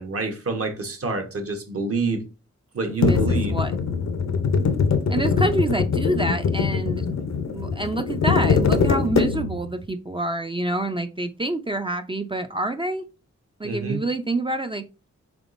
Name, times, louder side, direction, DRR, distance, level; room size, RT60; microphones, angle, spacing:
voice 1, 0.0-2.2 2.7-3.6 13.6-14.0, right 3 dB, 50° right, 1.0 m, -27 dB
sound 1, 3.0-9.7, left 5 dB, 65° left, 0.6 m, -22 dB
voice 2, 3.0-3.7 5.1-7.1 7.5-13.1 13.6-14.9, right 1 dB, 20° right, 0.4 m, -27 dB
3.9 x 3.5 x 2.5 m
wide cardioid pair, 65°, 29 cm